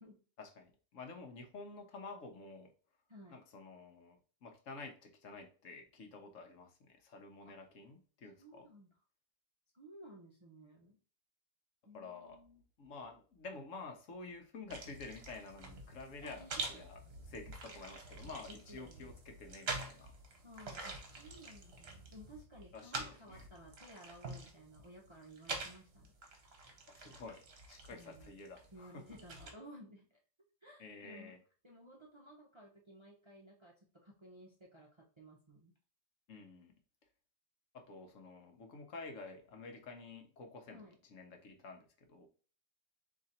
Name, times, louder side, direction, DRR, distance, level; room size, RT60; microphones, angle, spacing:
voice 1, 0.4-2.7 3.3-8.7 11.9-12.4 12.8-17.0 17.3-20.1 22.7-23.4 26.9-29.0 30.8-31.4 36.3-36.7 37.7-40.8 41.1-42.3, left 3 dB, 70° left, 5 dB, 1.2 m, -50 dB
voice 2, 3.1-3.4 7.4-7.6 8.4-8.9 9.7-11.0 11.9-12.6 16.2-16.9 18.2-19.1 20.4-26.1 27.9-28.3 28.7-30.1 30.6-31.4 31.6-35.7 40.7-41.0, equal, 30° right, 0 dB, 0.6 m, -56 dB
sound 1, 14.7-29.5, right 3 dB, 55° right, 1.2 m, -47 dB
3.8 x 3.0 x 4.1 m, 0.38 s
omnidirectional pair, 1.4 m